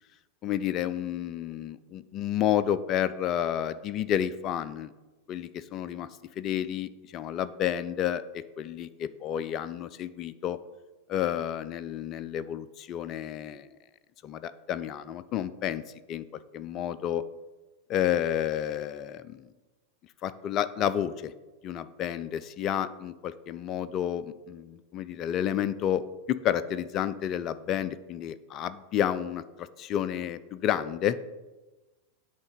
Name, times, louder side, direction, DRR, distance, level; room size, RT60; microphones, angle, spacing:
voice 1, 0.4-4.9 5.3-6.1 6.4-10.6 11.1-13.8 14.2-15.8 16.1-16.3 16.5-17.2 17.9-19.5 20.2-21.3 21.6-31.2, left 10 dB, 35° left, 13 dB, 0.3 m, -30 dB
9.1 x 3.5 x 5.1 m, 1.1 s
figure-of-eight pair, 90°, 0 cm